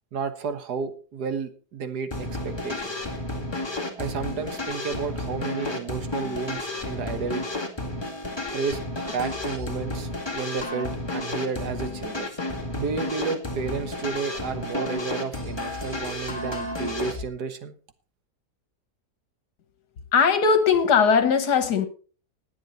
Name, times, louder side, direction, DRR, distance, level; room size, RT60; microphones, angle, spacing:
voice 1, 0.1-3.0 4.0-7.5 8.5-8.8 9.1-12.3 12.8-17.7, right 5 dB, 75° right, 1.8 m, -32 dB
sound 1, 2.1-17.2, left 2 dB, 15° left, 2.2 m, -32 dB
voice 2, 20.1-21.9, left 6 dB, 75° left, 1.8 m, -19 dB
20.0 x 7.3 x 4.1 m
omnidirectional pair, 1.7 m